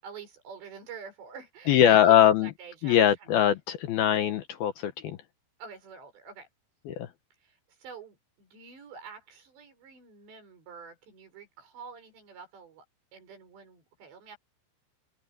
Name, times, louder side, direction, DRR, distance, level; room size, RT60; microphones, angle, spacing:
voice 1, 0.0-3.4 5.6-6.5 7.4-12.9 13.1-14.4, right 6 dB, 65° right, 9.0 m, -46 dB
voice 2, 1.7-2.5 2.8-5.2 6.9-7.1, left 10 dB, 70° left, 2.5 m, -22 dB
omnidirectional pair, 5.5 m